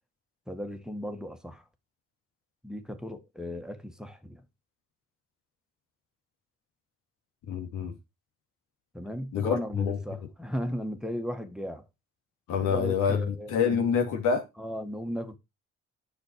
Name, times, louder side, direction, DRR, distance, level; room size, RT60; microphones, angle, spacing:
voice 1, 0.5-1.6 2.6-4.4 8.9-11.8 12.6-13.8 14.6-15.4, equal, ahead, 1.8 m, -36 dB
voice 2, 7.5-7.9 9.3-10.0 12.5-14.4, left 6 dB, 85° left, 2.9 m, -27 dB
10.5 x 6.5 x 4.8 m
cardioid pair, 90°, 30 cm